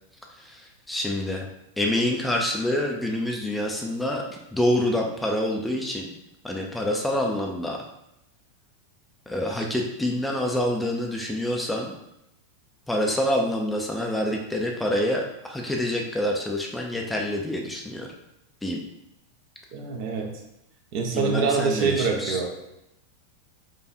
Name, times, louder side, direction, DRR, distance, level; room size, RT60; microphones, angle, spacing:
voice 1, 0.4-1.5 1.8-6.1 6.4-7.8 9.3-11.9 12.9-18.1 18.6-18.8 21.1-22.4, left 1 dB, 5° left, 0 dB, 0.6 m, -27 dB
voice 2, 19.7-20.3 20.9-22.5, right 5 dB, 45° right, 2 dB, 0.8 m, -25 dB
4.7 x 2.5 x 4.3 m, 0.85 s
figure-of-eight pair, 90°, 0 cm